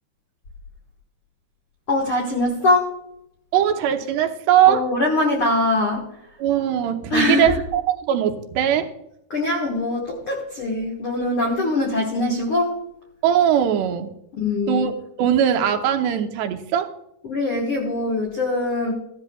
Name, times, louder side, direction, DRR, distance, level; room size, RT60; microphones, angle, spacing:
voice 1, 1.9-2.9 4.6-6.1 7.1-7.6 9.3-12.8 14.4-14.9 17.2-18.9, left 2 dB, 75° left, -1 dB, 1.2 m, -22 dB
voice 2, 3.5-4.8 6.4-8.9 13.2-14.1 14.7-14.9 15.2-16.9, right 10 dB, 85° right, 6 dB, 2.9 m, -20 dB
15.5 x 12.5 x 2.3 m, 0.80 s
omnidirectional pair, 4.7 m